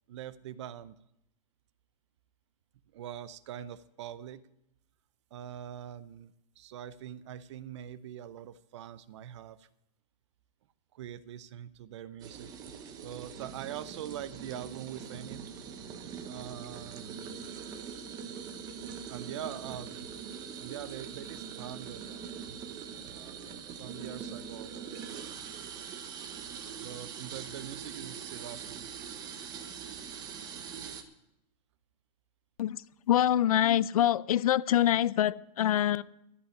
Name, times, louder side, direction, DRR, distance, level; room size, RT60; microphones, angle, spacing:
voice 1, 0.1-1.0 2.9-4.4 5.3-9.7 10.9-12.5 13.0-15.5 16.3-17.3 19.1-19.9 20.6-22.3 23.1-23.4 23.7-24.9 26.8-28.9, right 10 dB, 45° right, 17 dB, 0.6 m, -43 dB
sound 1, 12.2-31.0, right 7 dB, 20° right, 0.9 m, -43 dB
voice 2, 32.6-36.0, left 11 dB, 60° left, 19 dB, 0.5 m, -25 dB
14.0 x 5.7 x 9.7 m, 0.84 s
hypercardioid pair, 160°, 21 cm